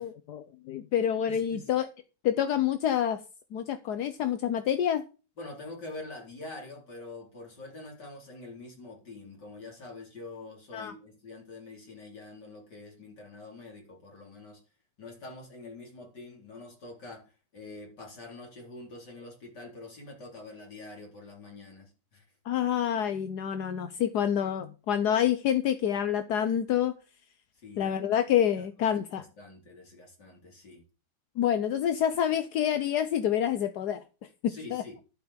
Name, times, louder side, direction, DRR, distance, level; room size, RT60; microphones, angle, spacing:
voice 1, 0.0-1.9 2.2-3.2 3.5-5.0 10.7-10.9 22.4-26.9 27.8-29.2 31.4-34.0 34.7-34.8, left 9 dB, 75° left, 1.4 m, -27 dB
voice 2, 1.3-1.7 5.4-14.6 15.0-22.2 27.6-28.0 28.6-28.7 29.2-30.8 34.5-35.0, left 2 dB, 90° left, 4.7 m, -45 dB
11.5 x 5.5 x 7.3 m
omnidirectional pair, 1.8 m